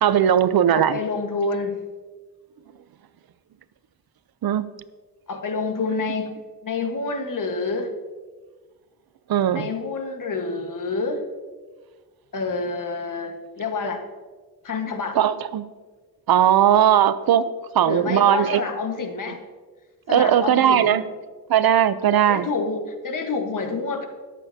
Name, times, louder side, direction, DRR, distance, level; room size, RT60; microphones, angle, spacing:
voice 1, 0.0-1.0 4.4-4.7 9.3-9.7 15.2-15.6 16.3-17.5 17.7-18.6 20.1-21.0 21.5-22.5, right 10 dB, 60° right, 0.6 m, -18 dB
voice 2, 0.7-1.8 5.3-7.9 9.5-11.2 12.3-14.0 14.6-15.2 17.8-19.4 20.1-21.0 22.3-24.0, left 4 dB, 50° left, 1.4 m, -28 dB
21.0 x 8.3 x 2.7 m
cardioid pair, 105°, 40 cm